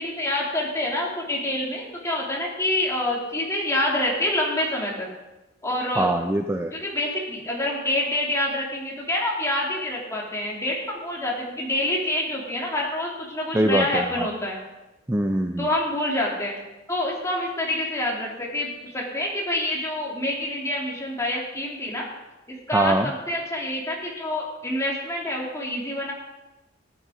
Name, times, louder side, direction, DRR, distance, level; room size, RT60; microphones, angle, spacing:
voice 1, 0.0-5.1 5.6-6.1 6.7-14.6 15.6-16.6 16.9-22.1 22.5-26.1, left 1 dB, 15° left, -3 dB, 2.9 m, -27 dB
voice 2, 6.0-6.7 13.5-14.3 15.1-15.7 22.7-23.1, right 1 dB, 15° right, 5 dB, 0.5 m, -23 dB
15.0 x 9.3 x 5.0 m, 1.0 s
head